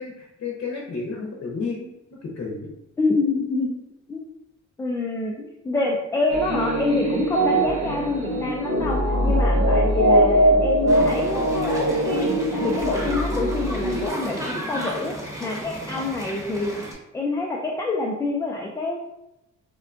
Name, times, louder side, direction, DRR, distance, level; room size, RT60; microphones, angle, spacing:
voice 1, 0.0-1.9 2.2-2.7, left 4 dB, 55° left, -2 dB, 0.8 m, -31 dB
voice 2, 3.0-3.8 4.1-4.3 4.8-16.9 17.1-19.0, left 3 dB, 10° left, -1 dB, 0.3 m, -27 dB
sound 1, 6.3-14.1, right 1 dB, 65° right, 0.9 m, -21 dB
sound 2, 10.9-16.9, equal, 10° right, 1.0 m, -34 dB
3.6 x 2.2 x 2.5 m, 0.88 s
cardioid pair, 90°, 30 cm